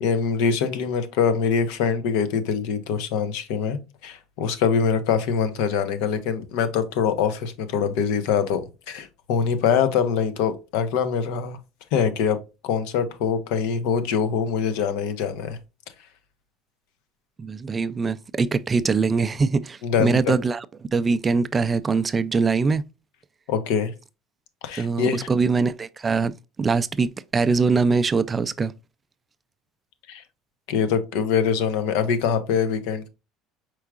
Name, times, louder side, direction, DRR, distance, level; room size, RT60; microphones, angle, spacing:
voice 1, 0.0-11.6 11.9-12.4 12.6-15.6 19.8-20.3 23.5-23.9 24.6-25.3 30.1-30.2 30.7-33.1, left 6 dB, 80° left, 0.8 m, -24 dB
voice 2, 17.4-20.7 20.9-22.8 24.8-28.7, right 4 dB, 25° right, 0.3 m, -23 dB
4.7 x 4.5 x 2.3 m
cardioid pair, 115°, 0 cm